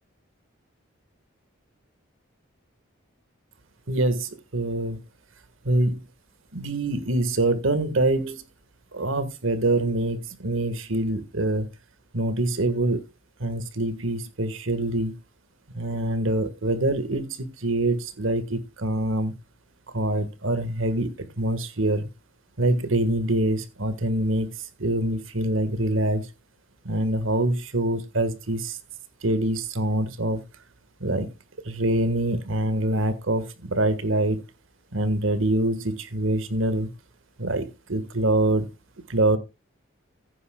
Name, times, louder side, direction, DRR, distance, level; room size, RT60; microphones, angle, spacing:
voice 1, 3.9-5.0 5.6-6.0 6.5-8.4 8.9-11.7 12.1-13.0 13.4-15.2 15.7-19.3 19.9-22.1 22.6-26.3 26.8-28.8 29.2-30.4 31.0-31.3 31.6-34.4 34.9-36.9 37.4-38.7 39.1-39.4, right 1 dB, 75° right, 1.6 m, -25 dB
15.0 x 9.6 x 2.3 m
head